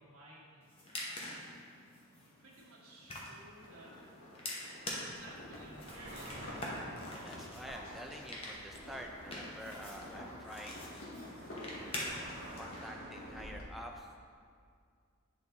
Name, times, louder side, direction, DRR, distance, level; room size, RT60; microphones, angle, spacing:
voice 1, 0.0-1.3 2.4-4.0 5.0-6.5, right 1 dB, 80° right, -5 dB, 1.4 m, -55 dB
sound 1, 0.6-12.6, left 1 dB, 25° left, 0.8 m, -46 dB
sound 2, 3.5-13.6, left 1 dB, 65° left, 1.0 m, -49 dB
Car passing by, 5.8-13.6, right 1 dB, 30° right, 0.8 m, -53 dB
voice 2, 7.2-11.1 11.7-12.2 12.5-14.2, equal, ahead, 1 dB, 0.4 m, -48 dB
8.2 x 4.1 x 3.4 m, 2.1 s
head